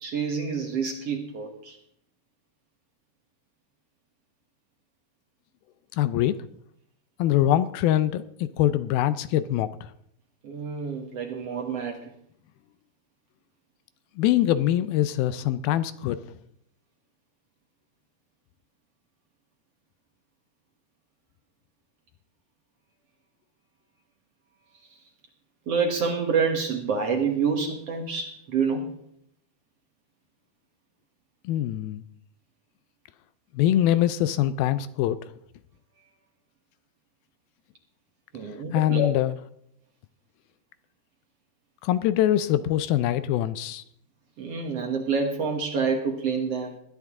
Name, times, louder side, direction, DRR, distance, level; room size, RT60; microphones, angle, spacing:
voice 1, 0.0-1.8 10.4-12.1 24.9-25.0 25.7-29.0 38.3-39.1 44.4-46.8, right 5 dB, 70° right, 3 dB, 1.5 m, -27 dB
voice 2, 5.9-6.4 7.2-9.9 14.2-16.2 31.4-32.0 33.5-35.2 38.7-39.3 41.8-43.8, left 12 dB, 85° left, 13 dB, 2.1 m, -23 dB
20.5 x 12.0 x 3.6 m, 0.70 s
omnidirectional pair, 4.8 m